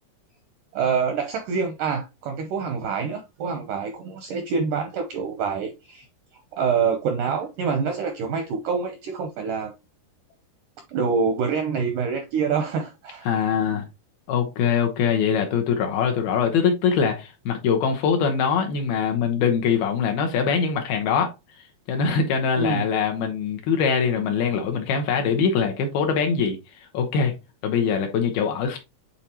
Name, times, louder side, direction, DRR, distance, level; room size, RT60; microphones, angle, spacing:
voice 1, 0.7-6.1 6.5-9.7 10.9-13.5 22.6-22.8, right 5 dB, 80° right, 1.9 m, -26 dB
voice 2, 13.3-13.9 14.3-21.3 21.9-27.3 27.6-28.8, left 6 dB, 75° left, 2.7 m, -23 dB
8.5 x 4.0 x 2.9 m
omnidirectional pair, 4.7 m